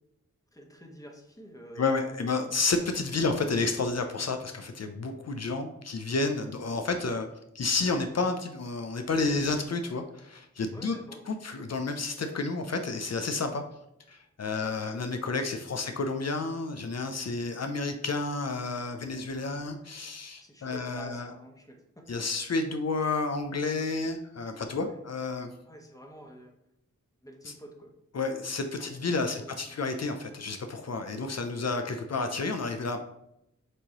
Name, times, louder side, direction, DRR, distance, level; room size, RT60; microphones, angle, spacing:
voice 1, 0.5-2.5 6.4-6.5 10.7-11.2 14.5-15.0 15.4-15.9 19.3-19.5 20.4-22.2 24.8-25.0 25.6-26.5 27.2-27.9 28.7-29.8, equal, 10° left, 2 dB, 1.0 m, -49 dB
voice 2, 1.8-7.3 7.5-11.0 11.3-13.6 14.1-21.3 22.1-25.5 28.1-33.0, left 3 dB, 55° left, 6 dB, 0.5 m, -30 dB
6.0 x 3.0 x 2.9 m, 0.81 s
wide cardioid pair, 50°, 31 cm